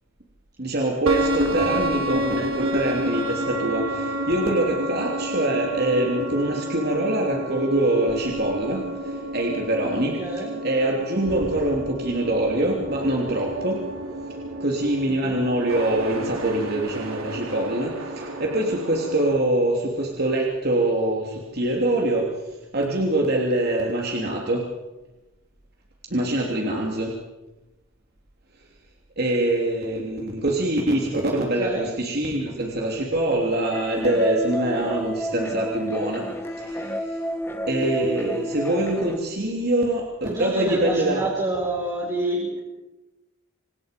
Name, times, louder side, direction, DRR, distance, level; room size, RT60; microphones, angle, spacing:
voice 1, 0.6-13.9 14.6-22.3 22.7-24.6 26.1-27.1 29.2-36.3 36.6-37.2 37.7-41.3, right 1 dB, 50° right, -1 dB, 3.3 m, -24 dB
sound 1, 1.1-19.4, right 1 dB, 85° right, 3.9 m, -30 dB
voice 2, 10.2-10.5 15.2-15.4 31.6-31.9 40.2-42.7, right 1 dB, 20° right, -5 dB, 6.8 m, -28 dB
sound 2, 33.7-39.2, equal, 10° left, 1.9 m, -30 dB
28.0 x 27.0 x 5.4 m, 1.1 s
head